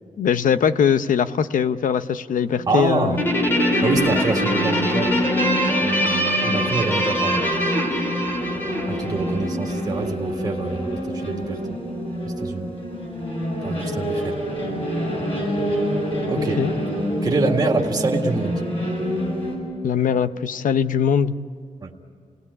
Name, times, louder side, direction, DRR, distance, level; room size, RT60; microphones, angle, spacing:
voice 1, 0.2-3.2 16.4-16.7 19.8-21.4, left 7 dB, 85° left, 12 dB, 0.7 m, -21 dB
sound 1, 2.4-19.6, equal, 45° left, 7.9 m, -26 dB
voice 2, 2.7-3.2 3.8-5.1 5.8-7.4 8.9-11.6 12.2-12.7 13.6-14.4 16.3-16.6 17.2-18.6 21.8-21.9, right 3 dB, 30° right, 0 dB, 2.0 m, -25 dB
Guitar, 3.2-9.9, equal, 15° left, 2.2 m, -24 dB
29.0 x 18.5 x 9.7 m, 2.1 s
wide cardioid pair, 175°, 13 cm